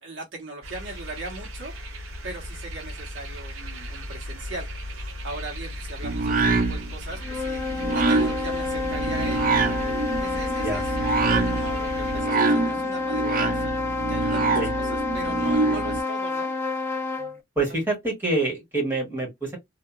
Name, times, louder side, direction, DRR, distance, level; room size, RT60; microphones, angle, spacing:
voice 1, 0.0-1.7 2.2-7.6 7.9-9.6 10.2-10.9 11.2-16.5, right 2 dB, 65° right, 1.0 m, -39 dB
sound 1, 0.6-12.2, equal, 85° right, 0.8 m, -36 dB
sound 2, 6.0-16.0, right 3 dB, 40° right, 0.4 m, -25 dB
sound 3, 7.1-17.4, left 3 dB, 10° left, 0.5 m, -29 dB
voice 2, 17.5-19.6, right 2 dB, 10° right, 1.4 m, -26 dB
2.8 x 2.4 x 2.3 m
head